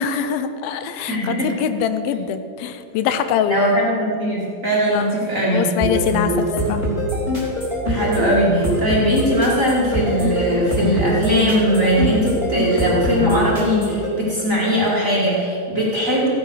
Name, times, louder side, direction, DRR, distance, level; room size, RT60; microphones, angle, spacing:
voice 1, 0.0-3.6 4.9-5.1 5.5-6.8, left 8 dB, 85° left, 10 dB, 2.6 m, -23 dB
voice 2, 1.1-1.5 3.5-5.7 7.8-16.3, equal, 30° right, -5 dB, 1.8 m, -20 dB
sound 1, 5.8-14.1, equal, 15° left, 3.3 m, -22 dB
15.5 x 9.4 x 6.3 m, 2.5 s
omnidirectional pair, 4.2 m